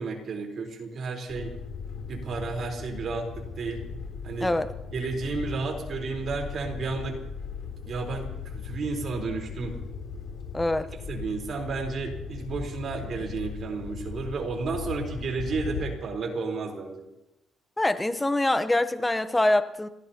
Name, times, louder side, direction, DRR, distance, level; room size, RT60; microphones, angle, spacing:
voice 1, 0.0-1.5 2.1-3.8 4.2-4.5 4.9-7.2 7.8-9.8 11.1-17.0, right 4 dB, 55° right, 4.0 m, -32 dB
sound 1, 1.3-15.9, left 6 dB, 80° left, 3.3 m, -38 dB
voice 2, 10.5-10.9 17.8-19.9, left 1 dB, 15° left, 0.9 m, -24 dB
30.0 x 16.5 x 2.9 m
cardioid pair, 90°, 0 cm